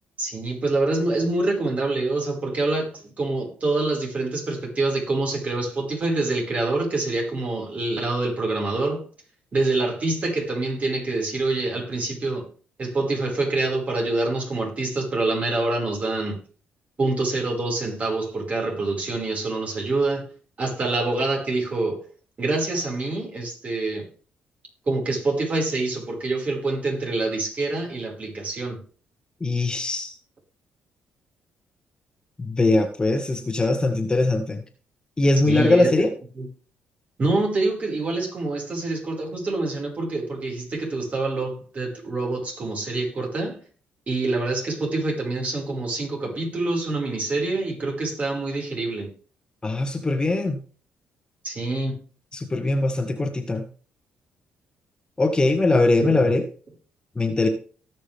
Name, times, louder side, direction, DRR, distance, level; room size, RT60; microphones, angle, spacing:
voice 1, 0.2-9.0 9.5-12.5 12.8-16.4 17.0-20.3 20.6-22.0 22.4-24.1 24.9-28.8 35.5-35.9 36.4-36.5 37.2-43.6 44.1-49.1 51.4-52.0 56.0-56.4, right 2 dB, 40° right, 5.3 m, -26 dB
voice 2, 29.4-30.1 32.4-34.6 35.2-36.1 49.6-50.6 52.3-53.7 55.2-56.4 57.1-57.5, left 2 dB, 25° left, 1.7 m, -21 dB
18.0 x 6.3 x 3.5 m
cardioid pair, 80°, 4 cm